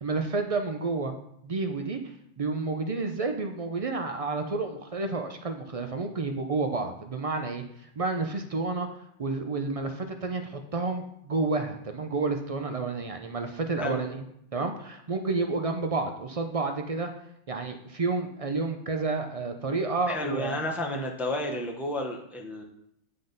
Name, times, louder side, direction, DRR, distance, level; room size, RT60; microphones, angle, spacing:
voice 1, 0.0-1.1 1.4-7.6 8.0-8.9 9.2-14.2 14.5-17.1 17.5-20.6, right 3 dB, 50° right, 5 dB, 0.4 m, -30 dB
voice 2, 20.1-22.6, left 1 dB, ahead, 1 dB, 0.6 m, -31 dB
9.5 x 3.7 x 3.9 m, 0.75 s
omnidirectional pair, 1.2 m